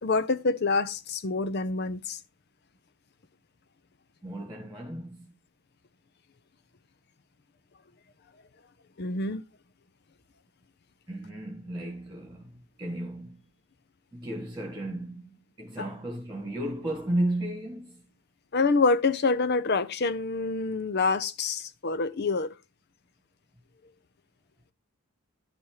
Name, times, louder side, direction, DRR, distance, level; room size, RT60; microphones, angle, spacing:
voice 1, 0.0-2.2 9.0-9.4 15.8-15.9 18.5-22.5, left 3 dB, 50° left, 0.6 m, -26 dB
voice 2, 4.2-5.3 11.1-13.4 14.1-18.0, right 1 dB, 10° right, 1.7 m, -34 dB
11.0 x 4.3 x 4.7 m
head